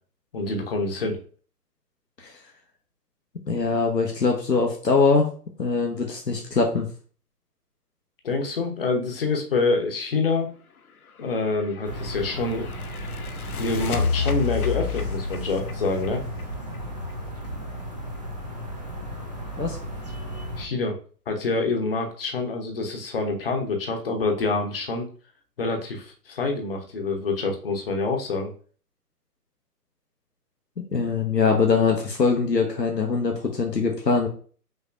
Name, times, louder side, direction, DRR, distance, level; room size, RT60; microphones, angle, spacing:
voice 1, 0.3-1.2 8.2-10.5 11.2-12.7 13.6-16.2 20.6-21.0 21.3-25.1 25.6-28.5, left 3 dB, 35° left, 3 dB, 0.9 m, -26 dB
voice 2, 3.5-5.3 5.6-6.9 19.6-19.8 30.9-34.3, left 4 dB, 85° left, 2 dB, 0.9 m, -22 dB
sound 1, 11.4-17.1, left 6 dB, 65° left, 0.6 m, -30 dB
sound 2, 11.8-20.7, equal, 30° right, 0.4 m, -35 dB
5.8 x 2.8 x 2.5 m, 0.42 s
figure-of-eight pair, 135°, 48 cm